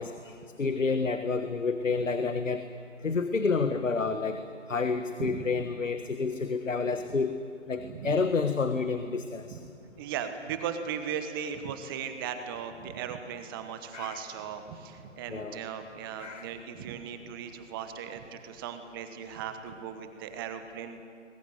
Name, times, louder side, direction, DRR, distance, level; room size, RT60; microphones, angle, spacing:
voice 1, 0.0-2.6 3.0-4.4 4.7-7.3 7.7-9.6 13.9-14.2 15.3-15.7 16.2-16.5, left 4 dB, 80° left, 9 dB, 1.5 m, -29 dB
voice 2, 10.0-21.0, right 8 dB, 20° right, 8 dB, 1.1 m, -37 dB
22.0 x 21.5 x 9.5 m, 2.4 s
figure-of-eight pair, 145°, 38 cm